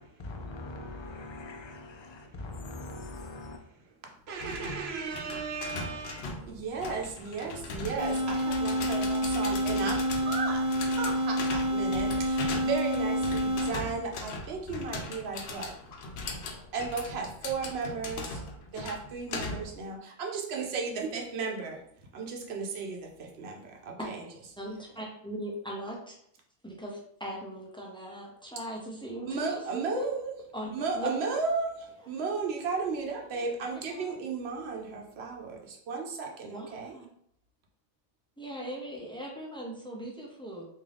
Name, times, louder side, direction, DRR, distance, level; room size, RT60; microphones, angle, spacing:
voice 1, 0.0-3.6, left 2 dB, 40° left, 0.4 m, -42 dB
voice 2, 4.3-15.7 16.7-18.4 18.7-21.8 22.1-24.2 29.3-30.3 30.7-37.0, right 4 dB, 90° right, 0.9 m, -35 dB
sound 1, 4.4-19.8, left 3 dB, 75° left, 0.8 m, -39 dB
sound 2, 8.0-14.0, equal, 50° right, 1.1 m, -28 dB
voice 3, 24.6-26.1 26.6-30.1 30.5-31.1 33.3-33.4 33.7-34.1 36.4-37.0 38.4-40.7, equal, 5° left, 0.7 m, -39 dB
3.7 x 2.7 x 3.3 m
omnidirectional pair, 1.0 m